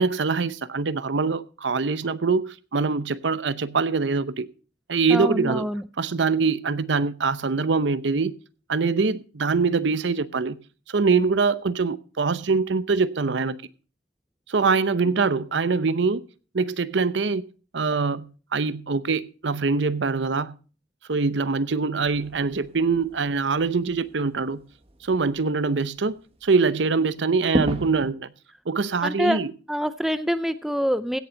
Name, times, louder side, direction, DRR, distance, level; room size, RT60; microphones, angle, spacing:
voice 1, 0.0-4.5 4.9-5.7 6.0-8.3 8.7-10.6 10.9-13.6 14.5-16.2 16.5-17.4 17.7-20.6 21.1-24.6 25.0-26.1 26.4-28.3 28.7-29.5, right 4 dB, 80° right, 0.7 m, -23 dB
voice 2, 5.1-5.8 29.0-29.4 29.7-31.2, equal, ahead, 0.5 m, -25 dB
sound 1, 22.0-28.1, right 1 dB, 30° right, 1.4 m, -35 dB
16.5 x 7.1 x 5.2 m
head